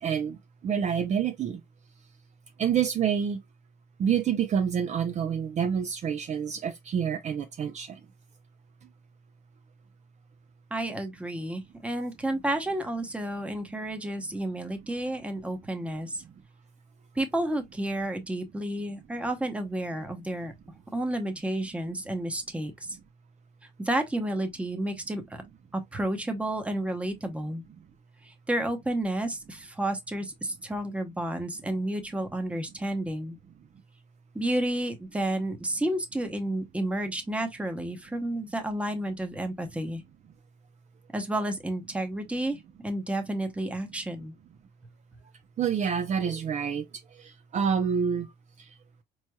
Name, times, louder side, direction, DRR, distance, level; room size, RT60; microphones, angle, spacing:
voice 1, 0.0-1.6 2.6-3.4 4.0-8.0 45.6-48.3 48.6-48.7, right 7 dB, 45° right, 0.5 m, -28 dB
voice 2, 10.7-16.2 17.1-20.5 20.9-23.0 23.8-25.4 25.7-27.6 28.2-33.4 34.3-40.0 41.1-44.3, right 1 dB, 5° right, 0.8 m, -31 dB
4.2 x 3.1 x 2.2 m
cardioid pair, 110°, 17 cm